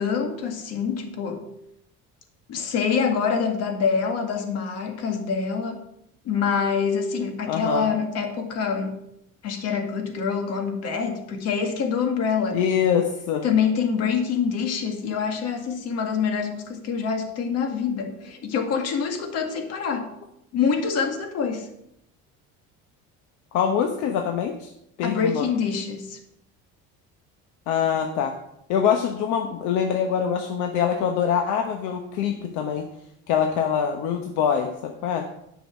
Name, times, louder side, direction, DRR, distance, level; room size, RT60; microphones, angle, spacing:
voice 1, 0.0-1.5 2.5-5.8 6.2-9.0 9.4-12.7 13.4-20.1 20.5-21.7 25.0-26.2, left 6 dB, 55° left, 5 dB, 1.9 m, -25 dB
voice 2, 7.5-7.9 12.5-13.4 23.5-24.7 25.0-25.5 27.7-28.3 28.7-32.9 33.3-35.3, left 8 dB, 75° left, 5 dB, 1.0 m, -24 dB
10.5 x 6.2 x 6.0 m, 0.78 s
cardioid pair, 155°, 30 cm